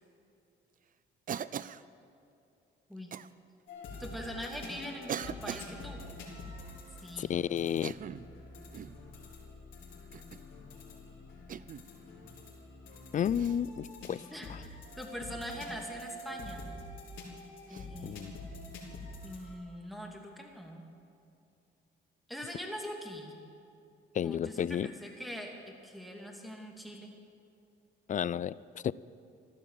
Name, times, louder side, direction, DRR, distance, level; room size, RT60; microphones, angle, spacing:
Cough, 1.3-1.9 3.1-3.3 4.2-4.3 5.1-5.7 7.7-8.3 8.7-9.0 10.1-10.5 11.5-11.9 13.3-13.6 15.8-16.0 17.7-17.9, right 8 dB, 45° right, 0.5 m, -40 dB
sound 1, 3.7-19.5, left 1 dB, 80° left, 3.9 m, -47 dB
voice 1, 4.0-6.0 7.0-7.3 14.3-16.7 17.7-18.4 19.2-20.8 22.3-23.3 24.2-25.5 25.8-27.1, equal, ahead, 1 dB, 2.7 m, -43 dB
voice 2, 7.2-7.9 13.1-14.2 18.0-18.3 24.1-24.9 28.1-28.9, left 9 dB, 40° left, 20 dB, 0.4 m, -32 dB
15.0 x 12.0 x 7.6 m, 2.6 s
cardioid pair, 90°, 20 cm